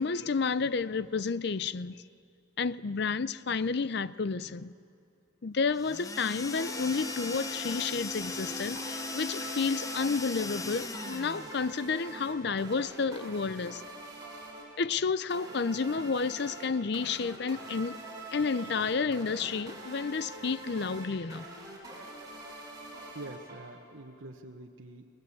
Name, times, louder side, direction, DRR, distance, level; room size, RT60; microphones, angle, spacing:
voice 1, 0.0-2.0 2.6-4.7 5.4-13.8 14.8-18.0 18.3-21.5, left 5 dB, 55° left, 0.5 m, -31 dB
sound 1, 5.7-11.6, left 3 dB, 15° left, 0.7 m, -38 dB
sound 2, 6.6-24.0, right 2 dB, 20° right, 6.5 m, -45 dB
voice 2, 23.1-25.1, right 2 dB, 85° right, 1.2 m, -45 dB
29.5 x 20.5 x 8.5 m
head